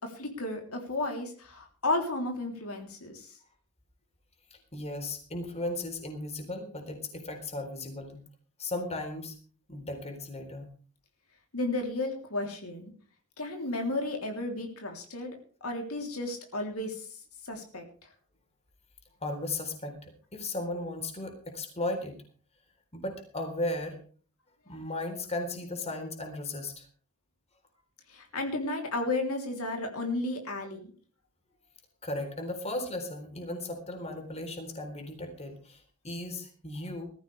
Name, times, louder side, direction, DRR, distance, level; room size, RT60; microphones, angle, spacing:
voice 1, 0.0-3.4 11.5-12.9 13.4-18.1 28.1-30.9, left 2 dB, 75° left, 3 dB, 3.4 m, -33 dB
voice 2, 4.7-8.2 8.6-9.3 9.7-10.7 19.2-22.2 22.9-24.0 24.7-26.9 32.0-37.1, left 2 dB, 30° left, 5 dB, 3.9 m, -36 dB
20.5 x 14.5 x 3.4 m, 0.41 s
head